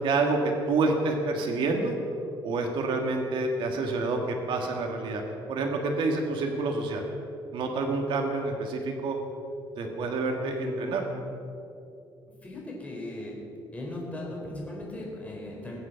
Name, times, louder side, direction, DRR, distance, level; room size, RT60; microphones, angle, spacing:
voice 1, 0.0-2.0 2.4-5.2 5.5-7.1 7.5-9.2 9.8-11.0, right 3 dB, 65° right, 2 dB, 1.7 m, -28 dB
voice 2, 10.4-11.2 12.4-13.3 13.7-15.8, left 1 dB, 15° left, -3 dB, 4.4 m, -38 dB
22.0 x 8.2 x 5.7 m, 2.7 s
cardioid pair, 140°, 9 cm